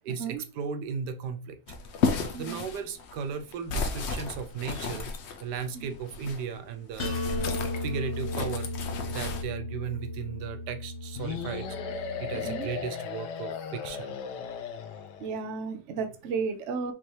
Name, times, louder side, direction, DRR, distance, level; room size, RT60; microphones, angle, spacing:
voice 1, 0.0-1.6 2.4-5.1 5.4-7.2 7.8-8.7 9.1-14.2, right 6 dB, 80° right, 8 dB, 1.2 m, -36 dB
sound 1, 1.7-6.4 6.9-9.4, left 4 dB, 60° left, 0.7 m, -33 dB
sound 2, 7.0-12.8, left 2 dB, 40° left, 1.0 m, -35 dB
sound 3, 11.2-15.3, left 7 dB, 90° left, 1.3 m, -36 dB
voice 2, 15.2-16.9, right 5 dB, 55° right, 6 dB, 0.9 m, -33 dB
5.3 x 2.9 x 3.2 m, 0.33 s
omnidirectional pair, 1.8 m